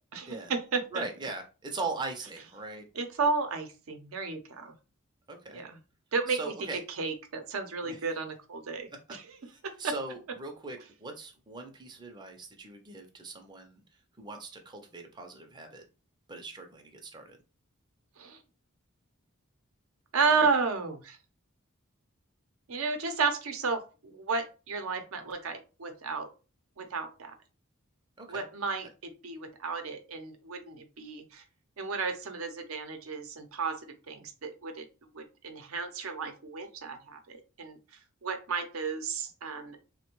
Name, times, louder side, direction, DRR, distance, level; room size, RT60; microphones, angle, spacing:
voice 1, 0.1-1.0 3.0-4.7 5.5-5.7 6.1-6.4 7.0-9.2 9.6-9.9 18.2-18.4 20.1-21.2 22.7-26.3 26.8-27.3 28.3-31.4 31.8-33.8 34.1-34.8 35.1-37.8 38.2-39.8, right 4 dB, 75° right, 6 dB, 0.6 m, -32 dB
voice 2, 0.9-2.9 5.3-5.6 6.3-6.8 7.8-8.0 8.9-9.2 9.4-13.8 14.2-15.8 16.3-17.4 28.2-28.5, right 3 dB, 20° right, 3 dB, 0.4 m, -40 dB
3.3 x 2.1 x 2.9 m, 0.32 s
head